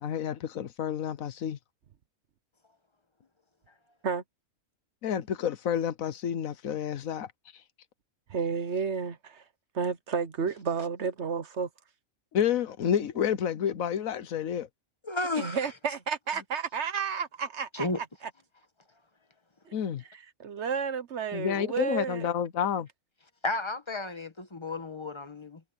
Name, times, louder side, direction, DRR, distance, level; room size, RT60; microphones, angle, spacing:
voice 1, 0.0-1.6 5.0-7.3 12.3-14.7 19.7-20.0 21.3-22.9, left 8 dB, 75° left, 1.3 m, -29 dB
voice 2, 8.3-9.4 9.7-11.7 15.3-17.9 19.7-19.8 20.1-22.3, right 6 dB, 55° right, 1.2 m, -31 dB
voice 3, 15.0-15.6 17.7-18.0 23.4-25.6, left 2 dB, 20° left, 1.1 m, -32 dB
omnidirectional pair, 1.4 m